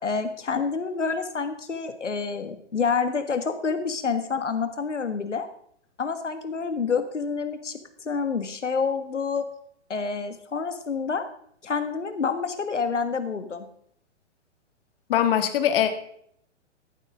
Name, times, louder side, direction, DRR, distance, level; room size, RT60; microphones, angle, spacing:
voice 1, 0.0-5.5 6.0-9.4 9.9-11.3 11.6-13.7, left 5 dB, 85° left, 9 dB, 1.8 m, -28 dB
voice 2, 15.1-15.9, left 10 dB, 50° left, 8 dB, 1.9 m, -21 dB
14.5 x 11.5 x 3.6 m, 0.67 s
figure-of-eight pair, 120°, 35 cm